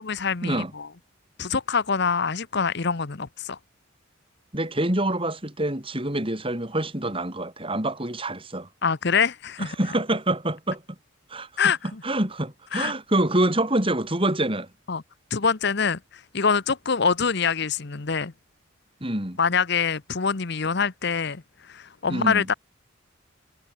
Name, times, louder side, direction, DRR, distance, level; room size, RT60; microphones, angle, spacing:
voice 1, 0.1-0.9 1.4-3.6 8.8-9.8 11.6-11.8 12.7-12.9 14.9-15.0 15.3-18.3 19.4-22.5, left 5 dB, 55° left, 0.9 m, -25 dB
voice 2, 4.5-8.7 9.6-10.8 11.3-11.5 12.0-14.7 19.0-19.4 22.1-22.5, right 1 dB, 25° right, 4.7 m, -26 dB
head